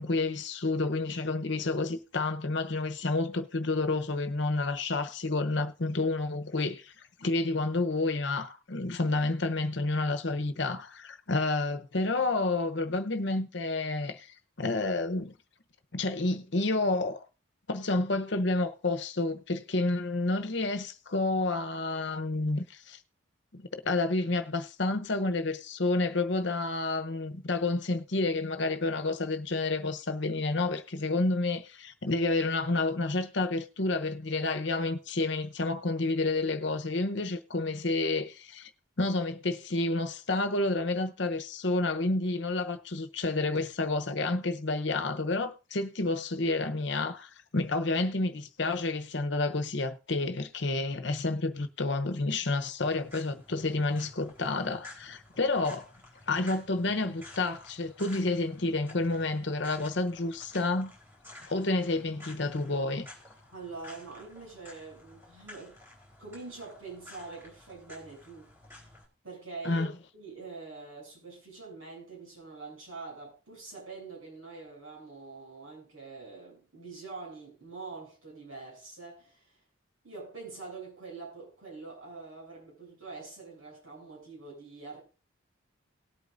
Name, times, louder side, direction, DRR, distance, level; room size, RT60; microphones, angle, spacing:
voice 1, 0.0-6.9 7.2-14.3 14.6-15.3 15.9-17.2 17.7-23.0 23.5-38.7 39.0-55.9 56.3-60.9 61.5-63.1 69.6-69.9, left 2 dB, 60° left, 0.9 m, -30 dB
sound 1, 52.8-69.0, left 2 dB, 10° right, 4.0 m, -52 dB
voice 2, 63.5-65.8 66.2-68.5 69.2-79.6 80.0-85.0, right 4 dB, 85° right, 7.9 m, -45 dB
19.0 x 8.5 x 2.6 m
head